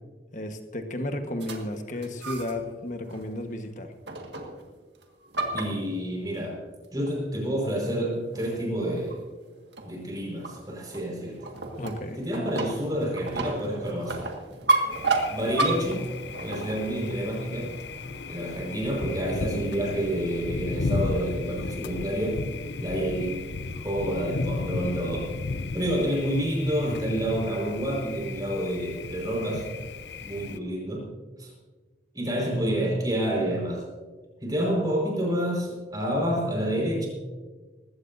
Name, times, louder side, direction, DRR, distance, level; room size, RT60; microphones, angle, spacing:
voice 1, 0.3-3.9 11.8-12.2, left 1 dB, 45° left, 6 dB, 1.3 m, -33 dB
sound 1, 1.4-2.7 3.1-3.4 4.1-4.7 5.0-6.4 7.1-7.2 7.6-7.7 8.3-8.7 9.0-9.2 9.7-17.2, right 2 dB, 80° right, 1.8 m, -31 dB
voice 2, 5.5-6.6 6.9-9.2 9.8-11.4 12.1-14.3 15.3-16.0 16.4-17.8 18.3-22.4 22.8-23.4 23.7-25.3 25.7-29.7 30.2-31.1 31.4-31.5 32.1-33.8 34.4-37.1, equal, 20° right, -2 dB, 4.9 m, -28 dB
Thunder, 14.9-30.6, left 3 dB, 75° left, 0.6 m, -35 dB
20.0 x 16.0 x 2.7 m, 1.3 s
head